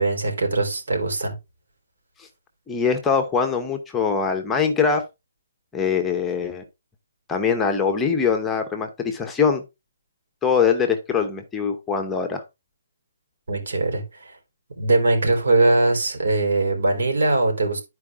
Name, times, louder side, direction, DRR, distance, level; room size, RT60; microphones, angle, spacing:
voice 1, 0.0-1.3 13.5-14.3 14.8-17.8, right 2 dB, 80° right, 3.9 m, -21 dB
voice 2, 2.7-5.0 5.7-6.6 7.3-9.6 10.4-12.4, left 6 dB, 10° left, 0.8 m, -22 dB
11.5 x 4.6 x 3.6 m
hypercardioid pair, 170°, 0 cm